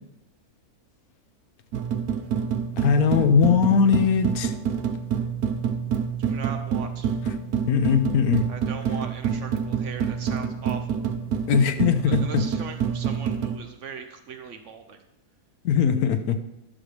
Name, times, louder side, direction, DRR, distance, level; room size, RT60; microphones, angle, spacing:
sound 1, 1.7-13.6, right 7 dB, 75° right, 1.2 m, -27 dB
voice 1, 2.8-4.5 7.7-8.5 11.5-12.5 15.6-16.4, left 6 dB, 75° left, 1.1 m, -20 dB
voice 2, 6.2-7.1 8.5-11.0 12.0-15.0, right 6 dB, 60° right, 0.9 m, -39 dB
11.0 x 6.4 x 3.3 m
omnidirectional pair, 1.6 m